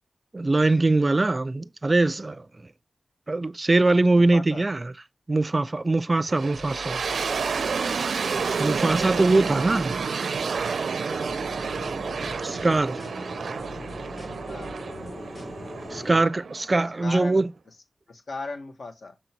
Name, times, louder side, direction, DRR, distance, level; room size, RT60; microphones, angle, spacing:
voice 1, 0.3-2.5 3.3-4.9 5.3-7.0 8.6-10.0 12.4-13.0 15.9-17.5, right 2 dB, 30° right, 0.4 m, -22 dB
voice 2, 4.1-4.7 14.5-14.7 17.0-17.4 18.1-19.2, left 3 dB, 70° left, 1.6 m, -37 dB
sound 1, 6.3-17.2, right 5 dB, 85° right, 0.5 m, -30 dB
sound 2, 6.5-8.6 8.9-11.0 11.2-13.3 13.6-15.9, left 2 dB, 55° left, 2.0 m, -47 dB
sound 3, 11.1-16.2, left 2 dB, 40° left, 1.2 m, -40 dB
6.4 x 3.9 x 4.5 m
wide cardioid pair, 105°, 0 cm